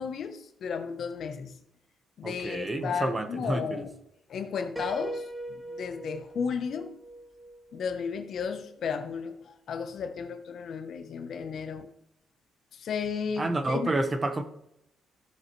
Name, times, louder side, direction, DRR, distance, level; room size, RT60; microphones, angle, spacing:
voice 1, 0.0-1.5 2.2-4.0 4.3-5.2 5.5-7.0 7.7-11.9 12.7-13.9, left 6 dB, 60° left, 0.9 m, -34 dB
voice 2, 2.2-3.8 13.4-14.4, right 2 dB, 25° right, 1.3 m, -29 dB
Piano, 4.8-8.5, right 1 dB, ahead, 1.3 m, -41 dB
14.0 x 7.3 x 3.2 m
cardioid pair, 90°, 0 cm